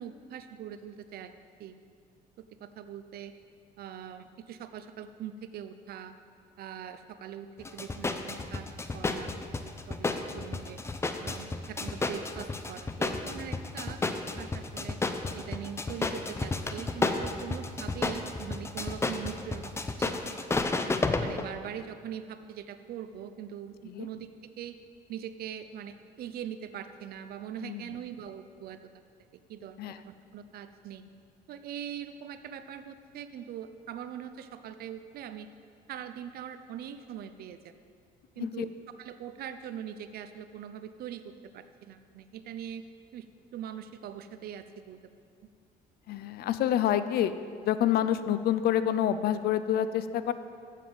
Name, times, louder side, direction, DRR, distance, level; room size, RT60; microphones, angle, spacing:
voice 1, 0.0-1.3 1.6-1.8 2.4-3.3 3.8-6.2 6.6-9.3 9.6-10.8 11.2-15.0 15.3-19.7 20.0-20.2 21.2-24.8 25.1-28.8 29.3-31.1 31.5-35.5 35.9-37.7 38.4-38.7 39.0-42.9 43.1-43.3 43.5-45.0, right 9 dB, 65° right, 10 dB, 0.6 m, -42 dB
sound 1, 7.6-21.4, left 3 dB, 15° left, 0.6 m, -32 dB
voice 2, 27.6-28.0 29.8-30.0 38.4-38.7 46.1-47.3 47.6-50.3, left 10 dB, 65° left, 13 dB, 0.5 m, -28 dB
7.7 x 7.4 x 6.9 m, 2.3 s
cardioid pair, 110°, 17 cm